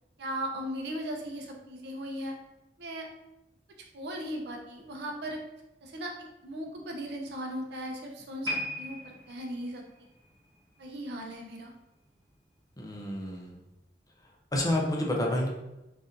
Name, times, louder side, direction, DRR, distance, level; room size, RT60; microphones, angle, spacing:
voice 1, 0.2-2.4 2.8-3.1 3.9-5.4 5.8-6.1 6.4-9.8 10.8-11.7, equal, 65° right, 1 dB, 0.6 m, -37 dB
sound 1, 8.4-11.7 12.0-12.3 13.0-13.1, left 1 dB, 20° right, 1.1 m, -39 dB
voice 2, 12.8-13.6 14.5-15.5, left 1 dB, 20° left, -1 dB, 0.5 m, -29 dB
3.9 x 2.5 x 2.5 m, 0.95 s
head